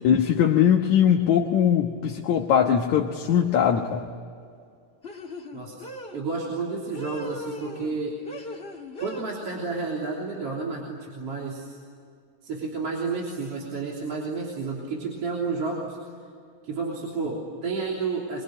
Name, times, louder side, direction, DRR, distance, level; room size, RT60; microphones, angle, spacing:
voice 1, 0.0-4.1, left 8 dB, 65° left, 2 dB, 2.4 m, -21 dB
sound 1, 3.3-3.6 5.0-6.2 6.9-8.0 8.3-9.2, equal, 25° left, 1.6 m, -39 dB
voice 2, 6.1-8.2 9.0-11.8 12.4-16.0 16.6-18.4, right 4 dB, 45° right, -3 dB, 4.1 m, -31 dB
24.5 x 24.0 x 9.8 m, 2.3 s
omnidirectional pair, 4.0 m